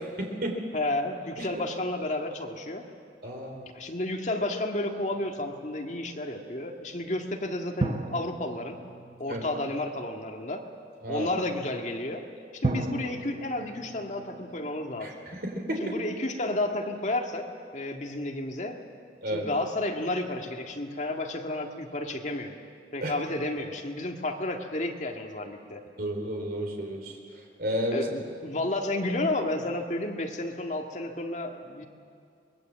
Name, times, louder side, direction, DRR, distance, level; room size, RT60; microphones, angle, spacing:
voice 1, 0.0-0.6 1.4-1.5 3.2-3.7 9.3-9.4 11.0-11.3 15.0-15.1 15.4-15.9 19.2-19.5 23.0-23.1 26.0-27.0 27.6-28.0, equal, 60° right, 2 dB, 3.6 m, -31 dB
voice 2, 0.7-2.8 3.7-8.8 9.2-10.6 11.1-12.2 12.6-15.1 15.8-17.5 17.7-18.8 19.3-22.5 22.9-25.8 27.9-31.9, left 1 dB, 45° left, 2 dB, 1.9 m, -31 dB
sound 1, 5.1-6.0 7.8-10.2 12.6-15.7, right 2 dB, 35° right, 1.0 m, -36 dB
25.0 x 20.5 x 7.6 m, 2.3 s
head